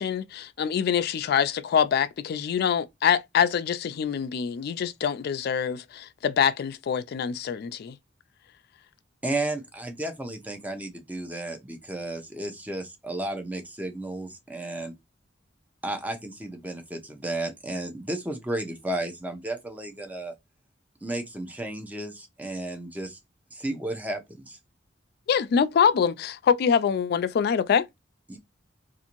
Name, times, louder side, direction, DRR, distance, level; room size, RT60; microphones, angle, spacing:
voice 1, 0.0-8.0 25.3-27.9, left 7 dB, 55° left, 0.3 m, -25 dB
voice 2, 9.2-14.9 15.8-20.3 21.0-23.2 23.5-24.6 28.3-28.4, right 1 dB, 10° right, 0.5 m, -33 dB
2.6 x 2.5 x 2.9 m
head